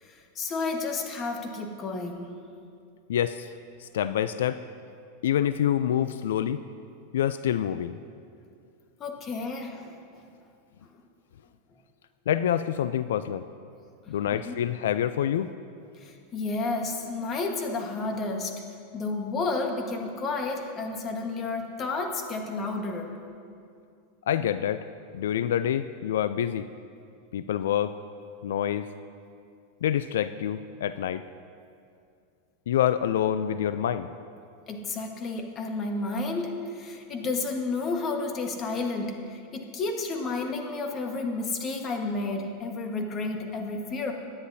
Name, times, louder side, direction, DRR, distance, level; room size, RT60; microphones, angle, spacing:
voice 1, 0.0-2.3 9.0-9.9 14.3-14.6 16.0-18.6 18.9-23.2 34.7-44.1, left 3 dB, 25° left, 2 dB, 1.4 m, -31 dB
voice 2, 3.1-3.5 3.8-4.6 5.2-6.6 7.1-8.0 12.3-13.4 14.1-15.5 24.3-24.8 25.1-26.7 27.3-27.9 28.4-28.8 29.8-31.2 32.7-34.1, left 10 dB, 90° left, 13 dB, 0.3 m, -26 dB
22.5 x 9.9 x 2.7 m, 2.4 s
supercardioid pair, 145°, 0 cm